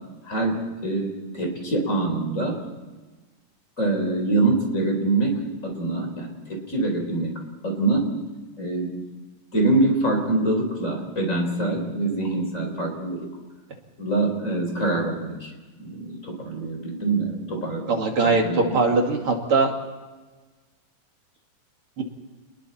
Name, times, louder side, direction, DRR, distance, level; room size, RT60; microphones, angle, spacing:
voice 1, 0.2-2.6 3.8-8.1 8.6-8.9 9.5-13.3 14.0-15.5 15.8-18.8, right 2 dB, 20° left, 2 dB, 4.7 m, -25 dB
voice 2, 17.9-19.7 22.0-22.1, right 3 dB, 40° right, 1 dB, 3.0 m, -21 dB
29.5 x 21.5 x 4.4 m, 1.3 s
omnidirectional pair, 3.9 m